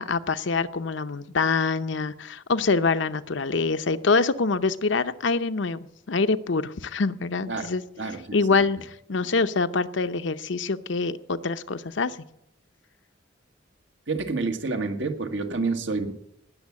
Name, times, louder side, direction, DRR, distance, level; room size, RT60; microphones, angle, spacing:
voice 1, 0.0-5.8 6.1-7.8 8.3-12.2, left 4 dB, 70° left, 11 dB, 0.7 m, -25 dB
voice 2, 14.1-16.1, right 3 dB, 75° right, 6 dB, 1.7 m, -28 dB
19.0 x 7.2 x 8.6 m, 0.78 s
head